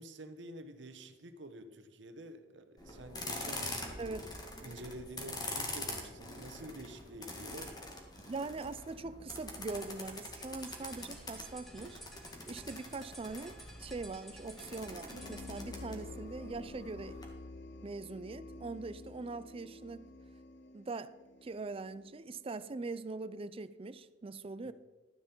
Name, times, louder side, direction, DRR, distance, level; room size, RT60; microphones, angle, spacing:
voice 1, 0.0-4.3 4.6-7.7 24.6-24.7, right 1 dB, 70° right, 1.1 m, -49 dB
sound 1, 2.8-17.2, left 2 dB, 20° left, 1.8 m, -45 dB
voice 2, 4.0-4.3 8.3-12.0 12.5-17.2 17.8-20.1 20.7-21.1 21.4-24.7, right 3 dB, 30° right, 0.4 m, -42 dB
sound 2, 10.5-15.7, right 1 dB, ahead, 1.7 m, -55 dB
sound 3, 15.1-22.5, left 2 dB, 65° left, 0.8 m, -49 dB
12.5 x 8.9 x 4.5 m
head